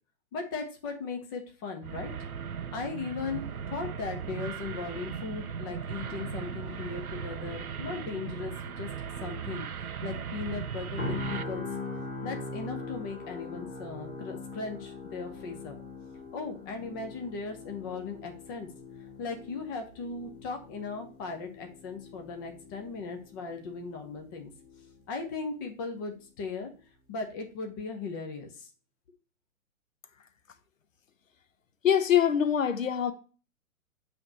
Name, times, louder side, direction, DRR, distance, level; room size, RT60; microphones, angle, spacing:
voice 1, 0.3-2.1 2.7-8.9 9.2-11.6 12.2-15.7 16.3-18.7 19.2-24.5 25.1-26.7 27.1-28.7, left 4 dB, 15° left, 0.5 m, -38 dB
sound 1, 1.8-11.4, right 7 dB, 85° right, 0.5 m, -37 dB
sound 2, 11.0-25.0 25.3-25.5, left 2 dB, 30° left, 1.9 m, -42 dB
voice 2, 31.8-33.1, left 9 dB, 65° left, 1.0 m, -24 dB
7.6 x 2.9 x 5.1 m
figure-of-eight pair, 120°, 42 cm